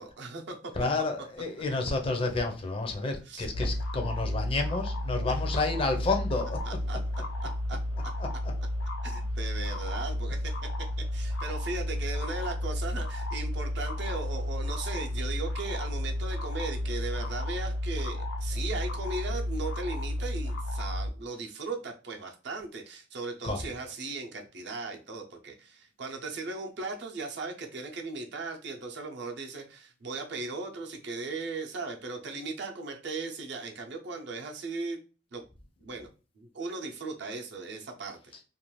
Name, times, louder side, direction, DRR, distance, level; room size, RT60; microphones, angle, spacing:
voice 1, 0.0-0.6 3.2-3.5 5.3-5.4 6.6-7.0 7.4-7.8 9.0-10.5 11.1-35.0 35.3-35.4 35.8-36.1 36.4-38.2, right 3 dB, 65° right, 0.6 m, -37 dB
voice 2, 0.8-6.6 8.2-8.3 23.4-23.6, left 3 dB, 30° left, 0.4 m, -30 dB
sound 1, 3.5-21.1, left 1 dB, 85° left, 0.4 m, -32 dB
2.5 x 2.3 x 3.0 m
head